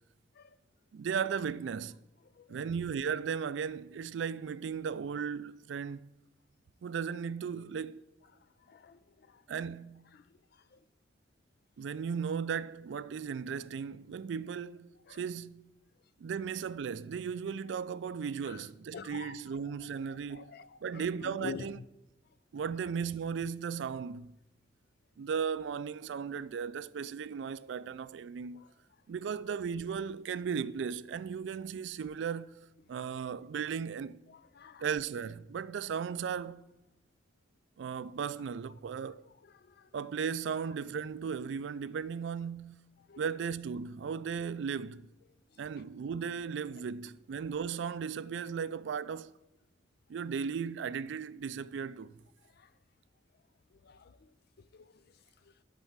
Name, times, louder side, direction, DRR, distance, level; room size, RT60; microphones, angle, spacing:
voice 1, 0.9-2.0 2.5-6.1 6.8-8.1 9.5-10.0 11.8-15.6 16.2-20.5 20.8-21.8 22.5-24.4 25.2-28.6 29.1-32.5 32.9-34.2 34.8-36.6 37.8-39.3 39.9-42.8 43.2-45.1 45.6-49.3 50.1-52.2, right 6 dB, 75° right, 0.3 m, -36 dB
voice 2, 8.6-9.4 10.1-10.2 10.7-10.8 15.1-15.2 18.4-18.7 18.9-19.6 19.9-20.0 20.3-21.8 28.5-28.7 34.3-34.8 39.4-39.9 43.1-43.3 52.6-52.7 53.8-54.3 54.7-55.0, left 5 dB, 60° left, 0.4 m, -47 dB
11.5 x 4.1 x 7.2 m
head